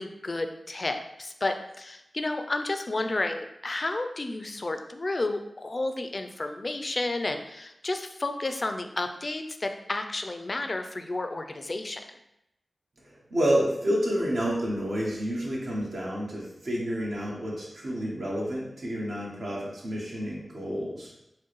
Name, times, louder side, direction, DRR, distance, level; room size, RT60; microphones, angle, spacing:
voice 1, 0.0-12.0, left 2 dB, 50° left, 7 dB, 0.4 m, -31 dB
voice 2, 13.3-21.1, equal, 75° right, -4 dB, 1.1 m, -29 dB
4.5 x 2.2 x 3.1 m, 0.84 s
cardioid pair, 50°, 0 cm